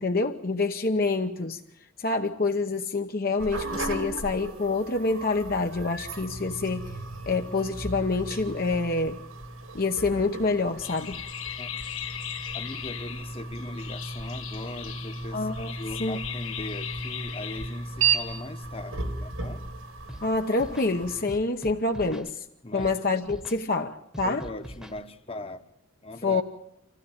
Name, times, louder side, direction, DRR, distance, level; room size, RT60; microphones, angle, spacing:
voice 1, 0.0-1.6 2.0-6.9 7.3-9.2 9.7-11.2 15.3-15.7 16.0-16.2 20.2-22.4 22.7-24.5 26.2-26.4, left 3 dB, 45° left, 0.9 m, -27 dB
sound 1, 3.4-21.2, right 4 dB, 70° right, 2.7 m, -35 dB
sound 2, 10.8-18.4, left 10 dB, 70° left, 1.4 m, -39 dB
voice 2, 12.5-19.7 22.6-23.0 24.2-25.6 26.0-26.4, left 2 dB, 25° left, 1.1 m, -40 dB
Scratching (performance technique), 20.1-20.3 20.5-20.9 21.3-22.3 22.8-22.9 23.2-23.6 24.1-25.0, equal, 5° right, 1.2 m, -42 dB
26.5 x 15.5 x 8.8 m
head